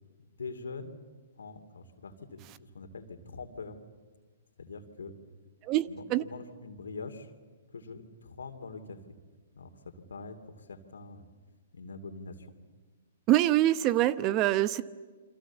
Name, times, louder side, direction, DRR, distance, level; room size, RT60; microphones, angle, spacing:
voice 1, 0.4-1.0 1.4-3.8 4.6-5.1 5.9-7.3 7.7-9.0 9.5-11.3 11.7-12.5, left 4 dB, 80° left, 8 dB, 2.7 m, -44 dB
voice 2, 5.6-6.2 13.3-14.8, right 14 dB, 35° right, 15 dB, 0.9 m, -25 dB
29.0 x 24.5 x 7.2 m, 1.4 s
hypercardioid pair, 125°, 0 cm